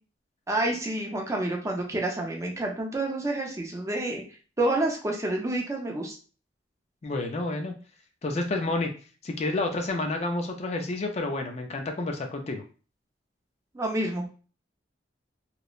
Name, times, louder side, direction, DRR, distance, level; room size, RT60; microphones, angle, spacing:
voice 1, 0.5-4.2 4.6-6.2 13.7-14.3, right 1 dB, 15° right, 1 dB, 0.5 m, -28 dB
voice 2, 7.0-7.7 8.2-8.9 9.2-12.6, left 2 dB, 35° left, 4 dB, 0.4 m, -29 dB
2.9 x 2.0 x 2.3 m, 0.37 s
head